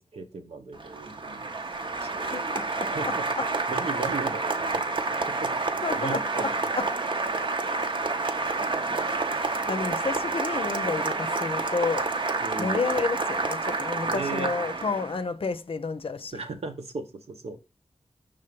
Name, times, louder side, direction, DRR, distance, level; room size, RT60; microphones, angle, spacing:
voice 1, 0.0-1.5 1.8-2.1 2.9-3.3 3.7-5.5 5.9-6.5 10.4-10.6 12.4-12.9 14.0-14.5 16.3-17.6, right 4 dB, 80° right, 1.0 m, -37 dB
Applause, 0.7-15.2, right 3 dB, 55° right, 0.8 m, -29 dB
voice 2, 2.2-3.4 5.8-6.9 9.3-12.1 12.6-16.4, left 4 dB, 60° left, 0.6 m, -31 dB
5.7 x 3.6 x 5.2 m
wide cardioid pair, 60°, 10 cm